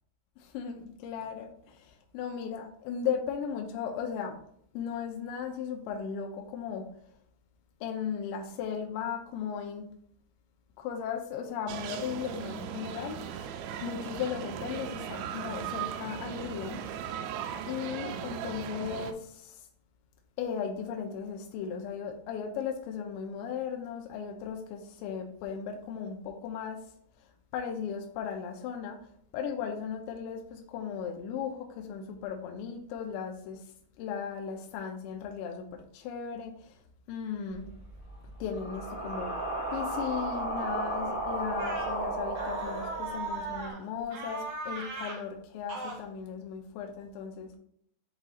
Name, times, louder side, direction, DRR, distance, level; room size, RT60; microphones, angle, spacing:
voice 1, 0.4-4.4 4.7-6.8 7.8-9.9 10.8-13.5 13.8-16.8 17.7-19.7 20.4-26.8 27.2-33.7 34.0-36.8 37.1-37.7 38.4-39.4 39.7-47.5, left 7 dB, 85° left, 2 dB, 2.8 m, -36 dB
sound 1, 11.7-19.1, right 9 dB, 85° right, 2.8 m, -38 dB
sound 2, 37.5-43.6, right 1 dB, 15° left, 0.9 m, -35 dB
sound 3, 41.6-41.9 42.3-43.8 44.1-45.2 45.7-46.0, right 3 dB, 55° right, 1.7 m, -37 dB
10.0 x 4.0 x 2.4 m, 0.66 s
omnidirectional pair, 5.2 m